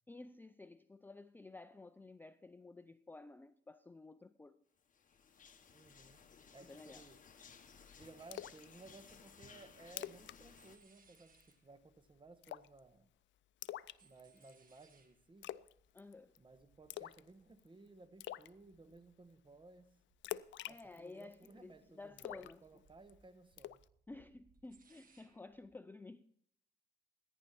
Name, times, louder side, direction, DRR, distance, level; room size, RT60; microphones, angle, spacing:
voice 1, 0.1-4.6 6.6-7.1 15.9-16.4 20.7-22.8 24.1-26.2, left 3 dB, 10° left, 0.4 m, -53 dB
sound 1, 4.9-10.8, left 6 dB, 40° left, 1.4 m, -59 dB
voice 2, 5.7-6.2 6.5-7.2 8.0-13.1 14.0-15.5 16.4-20.0 20.7-23.8, right 3 dB, 25° right, 1.3 m, -59 dB
Splash splatter, 8.3-8.6 9.0-9.1 9.5-9.6 9.9-10.4 10.6-10.8 11.1-11.5 12.4-12.8 13.6-14.5 15.4-15.7 16.0-16.4 16.9-17.3 17.6-17.7 18.2-18.5 20.2-21.5 22.2-23.1 23.6-23.8, left 13 dB, 70° left, 0.5 m, -45 dB
sound 2, 10.5-13.2 13.5-19.8 20.1-21.1 21.4-25.7, right 5 dB, 45° right, 1.7 m, -72 dB
14.5 x 10.5 x 4.3 m
cardioid pair, 90°, 20 cm